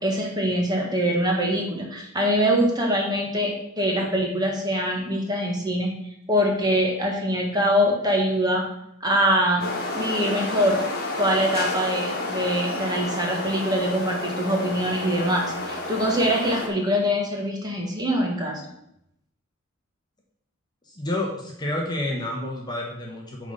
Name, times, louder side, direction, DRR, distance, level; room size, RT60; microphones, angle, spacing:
voice 1, 0.0-5.9 6.3-8.7 9.0-9.7 9.9-10.8 11.2-18.6, equal, 20° right, 0 dB, 1.5 m, -23 dB
sound 1, 9.6-16.7, left 2 dB, 45° left, 1.5 m, -30 dB
voice 2, 20.8-23.5, left 1 dB, 20° left, -1 dB, 1.1 m, -29 dB
8.4 x 4.0 x 5.4 m, 0.78 s
head